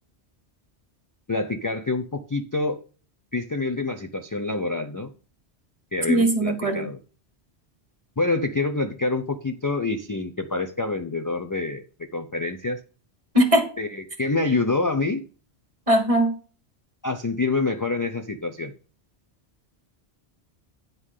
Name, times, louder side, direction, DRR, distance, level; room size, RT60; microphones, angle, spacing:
voice 1, 1.3-2.8 3.3-5.1 5.9-7.0 8.2-12.8 13.8-13.9 14.2-15.2 17.0-18.7, left 3 dB, 35° left, 7 dB, 0.3 m, -26 dB
voice 2, 6.1-6.9 13.3-13.6 15.9-16.3, right 1 dB, 30° right, 5 dB, 1.5 m, -20 dB
9.6 x 3.8 x 6.4 m, 0.39 s
omnidirectional pair, 1.1 m